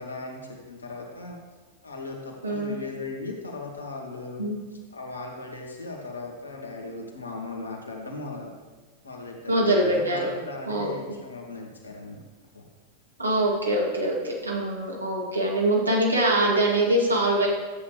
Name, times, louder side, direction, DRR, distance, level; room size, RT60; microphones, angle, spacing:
voice 1, 0.0-1.4 1.8-4.4 4.9-8.5 9.0-12.2 12.5-12.7, left 3 dB, 80° left, 0 dB, 1.8 m, -37 dB
voice 2, 2.4-2.8 4.4-4.6 9.5-10.3 10.7-10.9 13.2-17.5, right 1 dB, 80° right, -3 dB, 2.4 m, -23 dB
13.0 x 8.5 x 3.3 m, 1.3 s
figure-of-eight pair, 90°, 0 cm